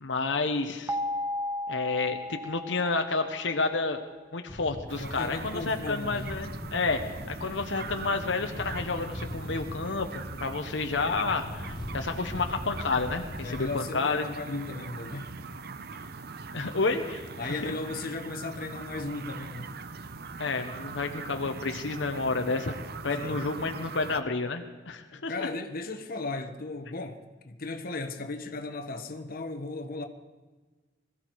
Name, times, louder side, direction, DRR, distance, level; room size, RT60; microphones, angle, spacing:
voice 1, 0.0-1.0 1.7-4.0 4.3-7.0 7.3-14.3 16.5-17.7 20.4-22.8 23.0-25.5, left 3 dB, 75° left, 1.0 m, -30 dB
sound 1, 0.9-3.8, left 1 dB, 15° right, 0.7 m, -35 dB
sound 2, 4.5-13.8, left 1 dB, 25° left, 0.9 m, -41 dB
sound 3, 4.9-24.2, right 4 dB, 55° right, 0.7 m, -41 dB
voice 2, 5.0-6.4 13.4-15.4 17.4-19.8 23.1-23.4 25.1-30.0, left 3 dB, 50° left, 1.1 m, -36 dB
21.0 x 14.0 x 4.7 m
head